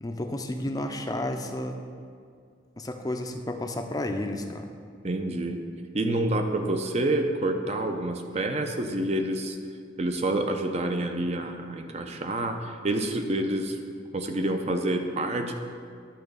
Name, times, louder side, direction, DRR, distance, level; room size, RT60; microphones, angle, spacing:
voice 1, 0.0-1.8 2.8-4.7, left 1 dB, 20° left, 4 dB, 0.5 m, -31 dB
voice 2, 5.0-5.7 5.9-9.6 10.0-13.8 14.1-15.5, right 1 dB, 35° right, 5 dB, 0.6 m, -28 dB
10.5 x 3.9 x 6.7 m, 2.2 s
head